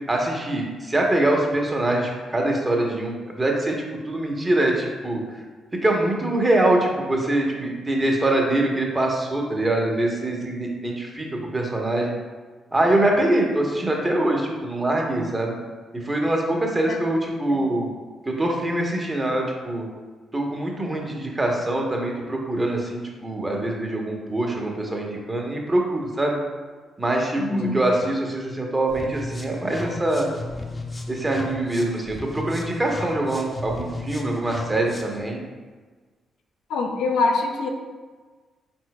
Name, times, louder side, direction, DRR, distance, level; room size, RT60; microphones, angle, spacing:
voice 1, 0.1-3.8 4.1-5.2 5.8-11.3 11.5-12.1 12.7-15.6 15.9-17.9 18.3-19.8 20.3-26.4 27.0-30.3 31.1-35.4, right 1 dB, 25° right, 0 dB, 0.9 m, -24 dB
voice 2, 27.4-27.8 36.7-37.7, left 3 dB, 75° left, 2 dB, 0.4 m, -24 dB
sound 1, 28.9-35.2, left 2 dB, 20° left, 0.7 m, -35 dB
4.4 x 3.9 x 2.2 m, 1.4 s
hypercardioid pair, 45°, 0 cm